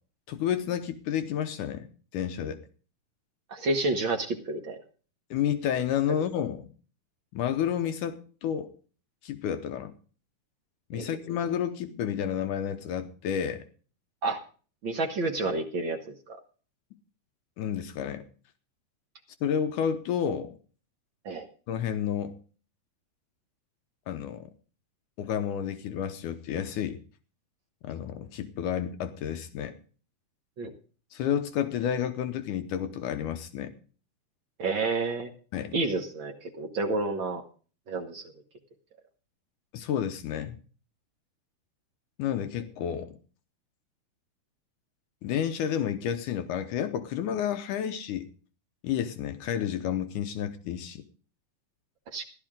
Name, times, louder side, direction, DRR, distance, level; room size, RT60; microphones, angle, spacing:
voice 1, 0.3-1.9 2.1-2.6 5.3-6.7 7.3-8.7 9.2-9.9 10.9-13.6 17.6-18.2 19.4-20.6 21.7-22.3 24.1-24.5 25.2-27.0 27.8-29.8 31.1-33.7 35.5-35.7 39.7-40.6 42.2-43.2 45.2-48.3 48.8-51.1, left 9 dB, 75° left, 9 dB, 2.4 m, -30 dB
voice 2, 3.5-4.8 10.9-11.1 14.2-14.4 14.8-16.4 21.2-21.5 30.6-30.7 34.6-35.3 35.7-37.4 37.9-38.2 52.1-52.2, right 3 dB, 55° right, 4 dB, 1.5 m, -30 dB
15.0 x 12.0 x 3.7 m, 0.39 s
omnidirectional pair, 3.7 m